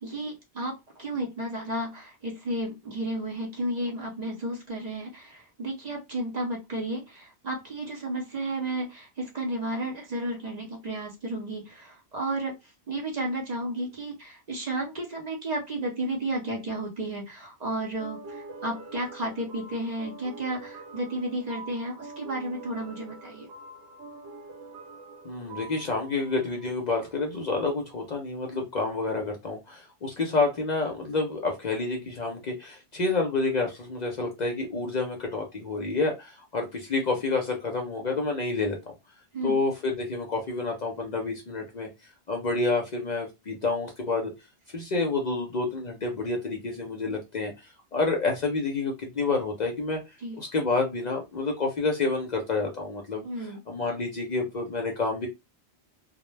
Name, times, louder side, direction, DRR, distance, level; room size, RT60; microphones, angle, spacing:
voice 1, 0.0-12.5 12.9-23.5 39.3-39.6 50.2-50.4 53.2-53.6, right 1 dB, 50° right, 0.6 m, -32 dB
sound 1, 18.0-27.3, right 3 dB, 85° right, 0.9 m, -45 dB
voice 2, 25.2-38.9 39.4-41.9 42.3-44.3 44.7-50.0 50.4-55.3, left 3 dB, 50° left, 0.5 m, -29 dB
2.1 x 2.0 x 3.1 m
omnidirectional pair, 1.1 m